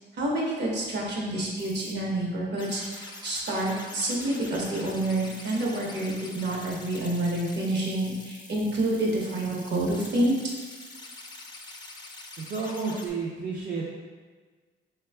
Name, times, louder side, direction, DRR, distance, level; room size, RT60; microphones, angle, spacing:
voice 1, 0.1-10.3, right 1 dB, 60° right, -3 dB, 0.9 m, -28 dB
sound 1, 1.6-1.9 2.6-13.1, left 2 dB, 20° left, 0.4 m, -45 dB
voice 2, 12.4-13.9, right 4 dB, 45° right, -4 dB, 0.5 m, -31 dB
3.4 x 2.3 x 3.3 m, 1.4 s
cardioid pair, 90°, 20 cm